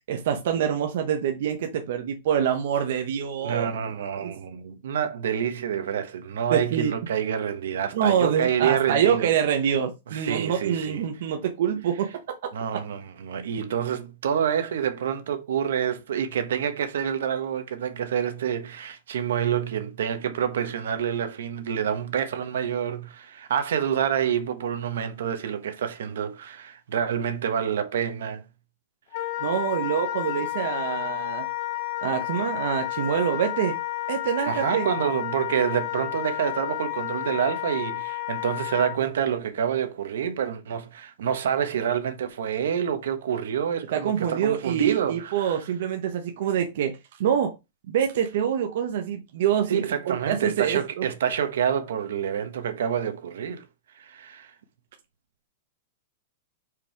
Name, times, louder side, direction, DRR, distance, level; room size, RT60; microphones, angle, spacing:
voice 1, 0.1-3.7 4.2-4.3 6.5-6.9 7.9-12.1 29.4-31.5 32.0-33.8 34.1-34.9 43.9-46.9 47.2-47.6 47.9-51.1, right 8 dB, 50° right, 1.0 m, -25 dB
voice 2, 3.4-9.3 10.1-11.0 12.5-28.4 34.5-45.6 49.7-53.6 53.9-54.5, right 8 dB, 75° right, 1.3 m, -27 dB
Wind instrument woodwind instrument, 29.1-39.0, left 16 dB, 35° left, 0.6 m, -31 dB
5.4 x 4.9 x 4.7 m
supercardioid pair, 180°, 0 cm